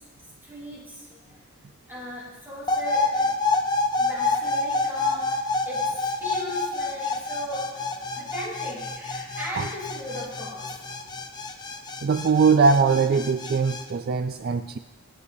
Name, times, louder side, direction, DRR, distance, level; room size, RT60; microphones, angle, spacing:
voice 1, 0.4-1.4 1.9-3.3 4.0-11.1, left 1 dB, 10° right, -6 dB, 3.9 m, -38 dB
sound 1, 2.7-13.8, left 3 dB, 20° left, 0.6 m, -28 dB
voice 2, 12.0-14.8, right 5 dB, 45° right, 9 dB, 0.3 m, -21 dB
25.0 x 8.4 x 2.7 m, 1.3 s
head